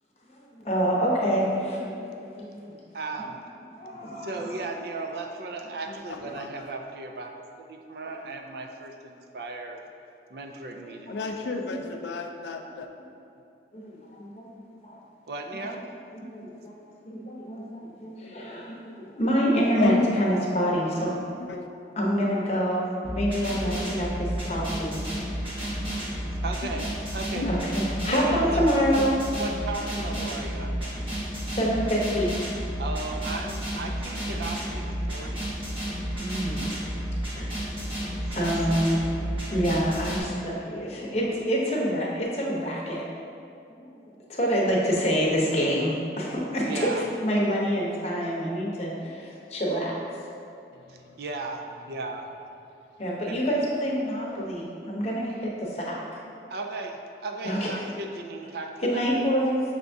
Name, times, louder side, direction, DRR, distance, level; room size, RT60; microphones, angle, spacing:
voice 1, 0.6-2.7 3.8-4.3 13.7-14.4 14.8-14.9 16.1-16.8 17.1-21.1 22.0-22.8 23.1-25.0 27.4-27.7 28.0-29.1 31.5-32.3 36.2-36.7 37.4-37.5 38.3-39.0 39.5-43.0 43.8-43.9 44.3-50.0 53.0-56.0 57.4-57.7 58.8-59.6, equal, 35° left, -4 dB, 0.7 m, -26 dB
voice 2, 2.9-3.4 4.2-7.3 7.7-9.8 10.3-11.6 15.3-15.9 26.4-27.5 28.1-28.6 29.3-30.8 32.8-35.5 38.2-38.6 46.6-47.1 50.9-52.3 53.3-53.4 56.5-59.2, right 3 dB, 60° right, 3 dB, 0.4 m, -36 dB
voice 3, 6.1-6.7 11.1-12.9 19.7-20.2 21.1-21.6 23.6-23.8 26.6-26.8 27.3-27.5, left 4 dB, 75° left, 4 dB, 0.3 m, -32 dB
sound 1, 23.0-40.2, equal, 30° right, 1.3 m, -31 dB
5.9 x 3.4 x 2.6 m, 2.6 s
head